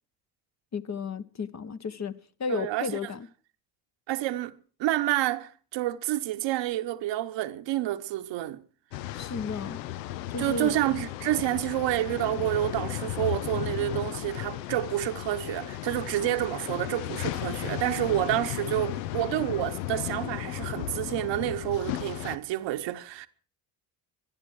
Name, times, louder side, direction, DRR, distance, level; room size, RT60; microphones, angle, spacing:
voice 1, 0.7-3.3 9.1-9.8 10.3-10.8, left 4 dB, 35° left, 1.0 m, -33 dB
voice 2, 2.5-3.1 4.1-4.5 4.8-8.6 10.4-23.3, right 14 dB, 60° right, 1.0 m, -29 dB
sound 1, 8.9-22.4, left 15 dB, 80° left, 0.6 m, -35 dB
24.5 x 10.5 x 4.7 m
figure-of-eight pair, 45°, 49 cm